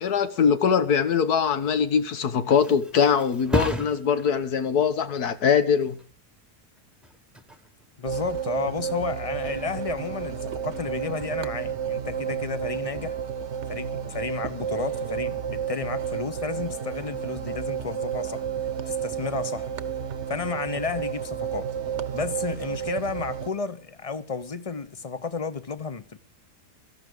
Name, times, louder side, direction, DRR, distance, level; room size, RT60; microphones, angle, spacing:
voice 1, 0.0-6.0, left 7 dB, 90° left, 1.7 m, -22 dB
Thump thud, 1.9-9.4 9.8-10.2, right 1 dB, ahead, 1.0 m, -36 dB
voice 2, 8.0-13.2 13.7-18.4 18.8-19.7 20.3-21.7 22.1-26.2, left 5 dB, 30° left, 0.7 m, -32 dB
sound 1, 8.0-23.5, right 8 dB, 55° right, 1.1 m, -31 dB
17.0 x 13.5 x 5.1 m
omnidirectional pair, 1.6 m